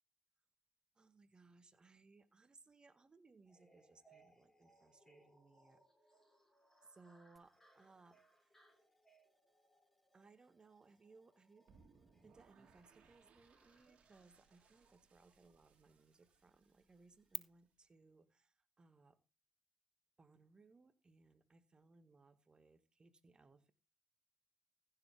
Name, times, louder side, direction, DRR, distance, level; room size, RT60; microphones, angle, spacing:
voice 1, 1.0-5.8 6.9-8.6 10.1-11.7 12.2-19.2 20.2-23.7, right 3 dB, 40° right, 11 dB, 1.7 m, -66 dB
sound 1, 3.5-15.0, right 2 dB, 20° left, 6.7 m, -72 dB
sound 2, 7.4-17.4, equal, ahead, 1.1 m, -60 dB
sound 3, 11.7-17.7, right 5 dB, 70° right, 2.6 m, -70 dB
15.5 x 7.1 x 3.6 m, 0.28 s
supercardioid pair, 50°, 2 cm